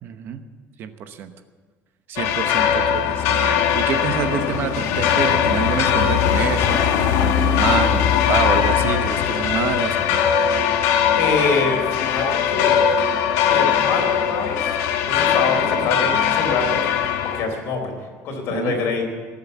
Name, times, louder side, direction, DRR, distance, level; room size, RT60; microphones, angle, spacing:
voice 1, 0.0-0.5 0.8-1.3 2.1-10.2 18.5-18.7, right 8 dB, 45° right, 9 dB, 0.9 m, -27 dB
sound 1, 2.2-17.4, left 8 dB, 70° left, 1.5 m, -20 dB
voice 2, 11.2-12.8 13.4-14.7 15.0-16.9 17.2-17.9 18.2-19.1, left 4 dB, 55° left, 2 dB, 3.9 m, -25 dB
19.5 x 7.8 x 8.1 m, 1.5 s
cardioid pair, 160°, 5 cm